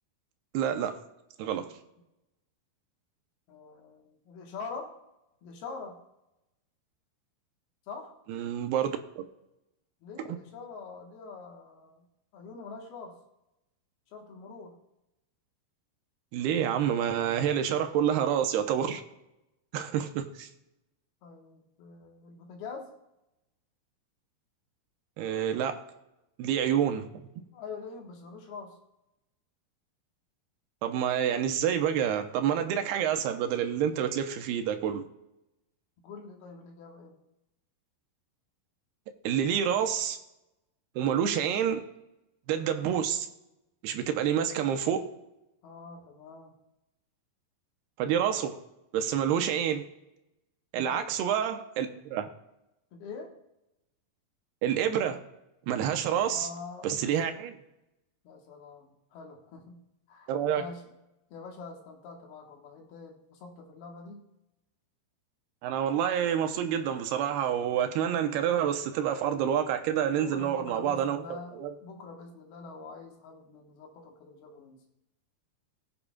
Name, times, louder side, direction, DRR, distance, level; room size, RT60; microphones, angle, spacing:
voice 1, 0.5-1.0 1.4-1.7 8.3-9.3 10.3-10.4 16.3-19.0 19.7-20.5 25.2-25.8 26.4-27.1 30.8-35.0 39.2-40.2 41.0-41.8 42.5-43.3 43.8-45.0 48.0-48.6 48.9-49.8 50.7-52.3 54.6-55.2 55.7-56.5 56.8-57.6 60.3-60.6 65.6-71.7, right 9 dB, 90° right, 6 dB, 2.8 m, -28 dB
voice 2, 3.5-5.0 5.4-6.0 7.9-8.1 10.0-12.1 12.3-13.2 14.1-14.8 21.2-22.9 27.5-28.8 36.0-37.1 45.6-46.6 50.7-51.1 52.9-53.3 56.2-57.1 58.2-60.9 61.3-64.2 70.2-74.8, left 4 dB, 75° left, 1 dB, 3.3 m, -44 dB
20.5 x 8.6 x 2.4 m, 0.90 s
omnidirectional pair, 4.5 m